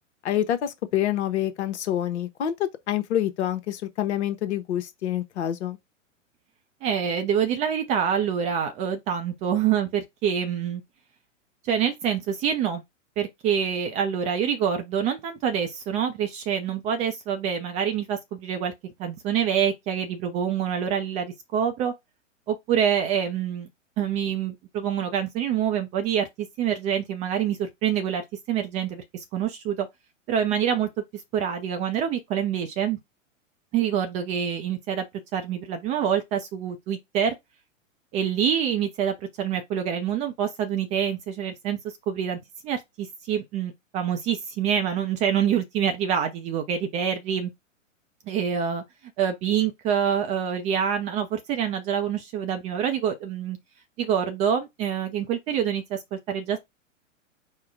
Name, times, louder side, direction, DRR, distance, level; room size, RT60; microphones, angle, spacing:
voice 1, 0.2-2.5 2.9-5.8, left 11 dB, 60° left, 0.9 m, -27 dB
voice 2, 6.8-10.8 11.6-12.8 13.2-21.9 22.5-23.7 24.0-29.9 30.3-33.0 33.7-35.0 35.3-37.3 38.1-41.8 42.1-47.5 48.3-48.8 49.2-53.6 54.0-56.6, right 8 dB, 20° right, 0.4 m, -26 dB
4.8 x 2.1 x 4.6 m
figure-of-eight pair, 110°, 39 cm